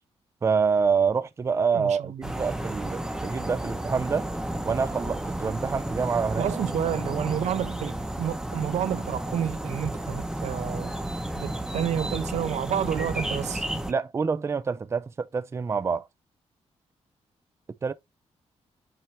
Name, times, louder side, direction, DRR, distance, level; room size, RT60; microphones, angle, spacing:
voice 1, 0.4-4.3 4.6-6.5 13.9-16.1 17.8-17.9, right 5 dB, 25° right, 0.4 m, -26 dB
voice 2, 1.7-2.3 6.4-10.9 11.4-13.6, right 10 dB, 80° right, 0.7 m, -30 dB
sound 1, 2.2-13.9, right 1 dB, 5° right, 0.8 m, -32 dB
7.7 x 3.2 x 4.1 m
wide cardioid pair, 150°, 12 cm